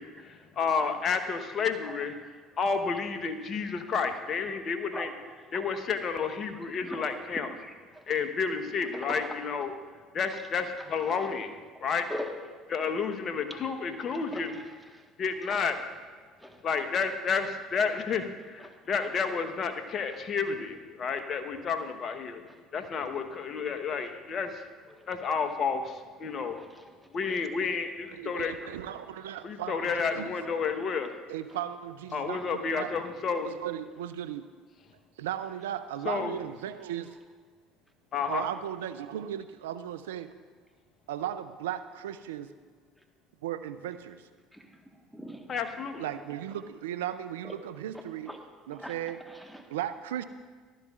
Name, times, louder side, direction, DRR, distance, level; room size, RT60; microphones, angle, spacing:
voice 1, 0.0-2.2 2.6-5.1 5.5-7.5 8.1-9.8 10.1-11.5 11.8-12.1 12.7-14.6 15.2-15.8 16.6-22.4 22.7-24.6 25.1-26.6 27.1-28.5 29.4-31.1 32.1-33.5 36.0-36.3 38.1-38.4 45.5-46.1, left 5 dB, 45° left, 7 dB, 1.1 m, -31 dB
voice 2, 6.7-7.1 7.6-8.0 9.1-9.4 11.0-11.3 11.8-11.9 12.1-12.4 14.3-14.5 14.9-15.0 15.5-15.6 16.4-16.6 18.6-18.7 20.1-20.2 26.6-26.9 44.5-44.7 45.1-45.4 47.4-47.6 48.3-48.4 48.7-48.9 49.2-49.7, equal, ahead, 3 dB, 1.4 m, -41 dB
voice 3, 28.1-30.8 31.3-34.5 35.2-37.2 38.3-40.3 41.1-42.5 43.4-44.2 46.0-48.3 48.7-49.2 49.7-50.2, right 11 dB, 85° right, 10 dB, 0.5 m, -36 dB
15.0 x 12.0 x 2.4 m, 1.5 s
hypercardioid pair, 70°, 0 cm